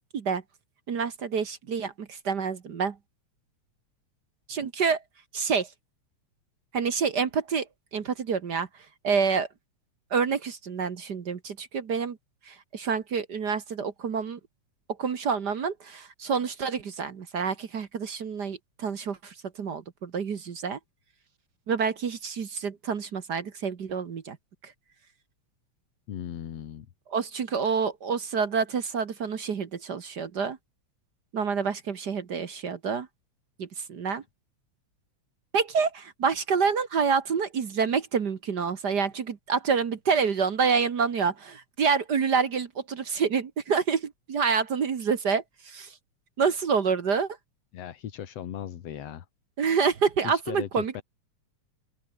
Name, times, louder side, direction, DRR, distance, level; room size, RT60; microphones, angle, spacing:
voice 1, 0.9-3.0 4.5-5.0 5.3-5.7 6.7-7.7 7.9-8.7 9.0-9.5 10.1-12.2 12.5-14.4 15.0-20.8 21.7-24.4 24.6-24.7 27.1-30.6 31.3-33.1 33.6-34.2 35.5-45.9 46.4-47.4 49.6-51.0, right 6 dB, 45° right, 1.5 m, -27 dB
voice 2, 26.1-26.9 47.7-49.3 50.2-51.0, left 10 dB, 60° left, 2.5 m, -37 dB
open air
omnidirectional pair, 3.3 m